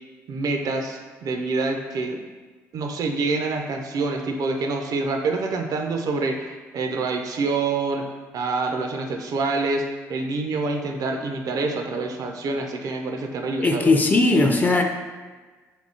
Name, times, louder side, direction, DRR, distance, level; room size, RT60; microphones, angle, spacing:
voice 1, 0.3-2.2 2.7-8.1 8.3-9.8 10.1-13.9, right 3 dB, 50° right, 4 dB, 0.4 m, -26 dB
voice 2, 13.6-14.8, left 2 dB, 20° left, 3 dB, 0.4 m, -18 dB
3.5 x 2.3 x 2.7 m, 1.4 s
figure-of-eight pair, 45°, 8 cm